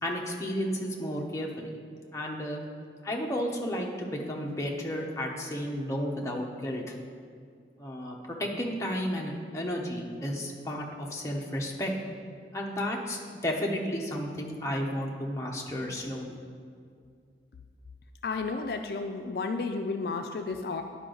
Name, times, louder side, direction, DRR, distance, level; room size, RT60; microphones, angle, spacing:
voice 1, 0.0-1.7 2.1-2.6 3.0-6.9 7.8-11.9 12.5-16.3, equal, 15° left, -1 dB, 0.8 m, -32 dB
voice 2, 18.2-20.8, left 4 dB, 60° left, 5 dB, 0.3 m, -32 dB
10.5 x 4.9 x 3.8 m, 2.2 s
head